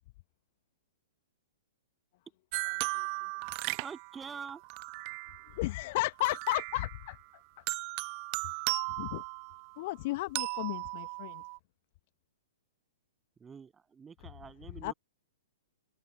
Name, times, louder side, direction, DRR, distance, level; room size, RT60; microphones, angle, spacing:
sound 1, 2.5-5.6 6.2-7.2 7.7-9.8 10.4-11.6, right 40 dB or more, 35° right, 0.6 m, -37 dB
voice 1, 3.8-4.6 13.4-14.9, right 6 dB, 15° right, 7.8 m, -45 dB
voice 2, 5.6-7.2 9.0-9.2 9.8-11.4 14.8-14.9, left 20 dB, 40° left, 1.0 m, -33 dB
open air
figure-of-eight pair, 110°, 0 cm